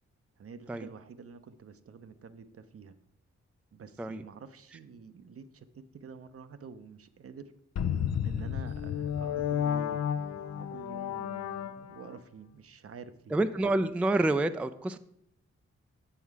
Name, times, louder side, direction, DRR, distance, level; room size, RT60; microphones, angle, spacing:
voice 1, 0.4-3.0 3.7-7.5 8.2-10.1 10.5-13.4, right 5 dB, 50° right, 11 dB, 0.7 m, -48 dB
sound 1, 7.8-12.2, left 9 dB, 60° left, 0.5 m, -32 dB
voice 2, 13.3-15.0, right 2 dB, 5° right, 11 dB, 0.3 m, -28 dB
7.1 x 5.6 x 4.7 m, 0.76 s
supercardioid pair, 45°, 29 cm